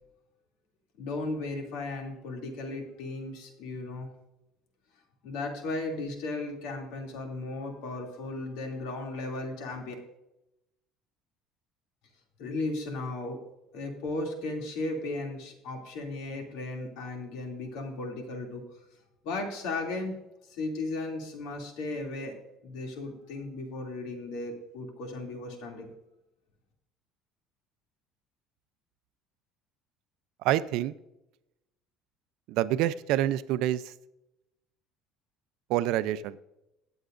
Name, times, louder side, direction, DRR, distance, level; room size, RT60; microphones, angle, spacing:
voice 1, 1.0-4.1 5.2-9.9 12.4-13.4 13.7-18.6 19.2-20.1 20.5-22.3 22.6-25.9, left 2 dB, 75° left, 2 dB, 2.6 m, -35 dB
voice 2, 30.4-30.9 32.5-33.8 35.7-36.4, right 13 dB, 65° right, 15 dB, 0.5 m, -27 dB
22.5 x 8.0 x 2.6 m, 0.91 s
cardioid pair, 165°, 0 cm